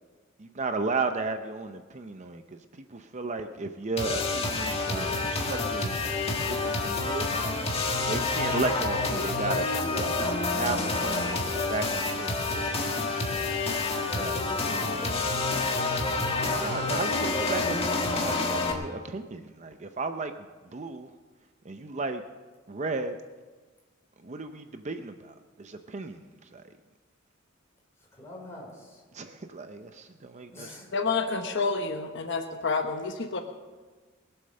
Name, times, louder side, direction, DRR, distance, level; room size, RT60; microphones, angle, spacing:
voice 1, 0.4-7.4 8.1-9.7 10.0-10.1 10.5-12.8 14.2-14.5 16.3-21.1 21.6-22.2 22.7-23.2 24.2-26.7 29.1-30.8, right 3 dB, 35° right, 8 dB, 0.6 m, -34 dB
sound 1, 4.0-18.7, left 3 dB, 30° left, 1.6 m, -28 dB
voice 2, 13.1-13.6 13.9-15.2 28.2-28.7 30.5-30.9, left 1 dB, 15° left, -3 dB, 4.7 m, -43 dB
voice 3, 30.9-33.4, left 4 dB, 60° left, 5 dB, 1.0 m, -29 dB
21.0 x 7.9 x 6.6 m, 1.4 s
head